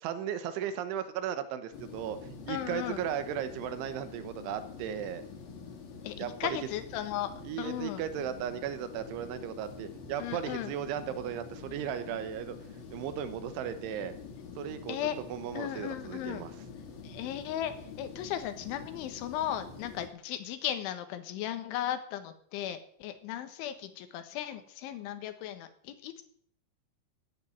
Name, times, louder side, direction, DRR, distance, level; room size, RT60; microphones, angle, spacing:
voice 1, 0.0-5.2 6.2-6.6 7.5-12.6 12.9-14.1 14.6-15.0 15.3-16.5, right 9 dB, 80° right, 11 dB, 3.6 m, -36 dB
sound 1, 1.7-20.1, left 5 dB, 55° left, 4.0 m, -46 dB
voice 2, 2.5-3.0 6.0-7.3 7.6-8.0 10.2-10.7 14.9-15.2 15.6-16.5 17.0-26.2, left 11 dB, 80° left, 10 dB, 3.8 m, -36 dB
13.5 x 10.5 x 8.5 m, 0.64 s
omnidirectional pair, 5.4 m